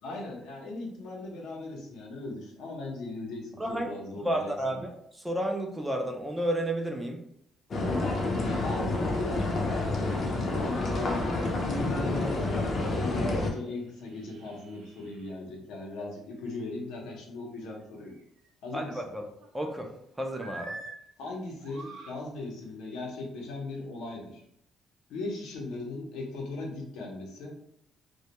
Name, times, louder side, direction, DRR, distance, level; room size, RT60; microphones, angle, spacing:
voice 1, 0.0-4.8 8.6-11.3 11.6-18.2 18.6-19.0 21.2-24.4 25.1-27.5, left 2 dB, 85° left, -1 dB, 0.7 m, -38 dB
voice 2, 3.6-3.9 4.2-7.2 18.7-19.3 19.5-19.9 20.2-20.8, right 1 dB, 10° right, 3 dB, 0.4 m, -31 dB
sound 1, 7.7-13.5, left 2 dB, 45° left, 0.5 m, -29 dB
sound 2, 13.5-15.3 17.8-18.5 18.9-19.9 20.3-21.0 21.5-22.2 22.9-23.1, right 2 dB, 70° right, 0.5 m, -48 dB
2.2 x 2.1 x 2.8 m, 0.72 s
cardioid pair, 120°, 0 cm